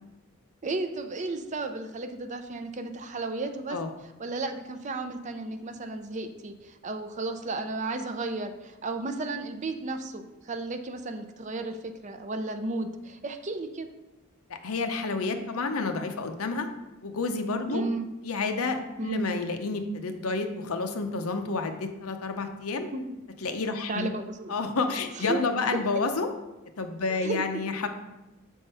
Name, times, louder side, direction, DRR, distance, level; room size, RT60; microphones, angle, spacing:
voice 1, 0.6-3.8 4.2-13.9 17.7-18.1 19.0-19.3 22.9-23.2 23.9-24.6 25.2-25.5 25.7-25.9 27.1-27.4, right 2 dB, 35° right, 7 dB, 0.5 m, -33 dB
voice 2, 14.5-16.7 17.0-17.8 18.2-22.9 23.4-24.1 24.5-26.3 26.8-27.9, left 3 dB, 85° left, 6 dB, 0.7 m, -30 dB
7.0 x 3.7 x 5.4 m, 1.1 s
head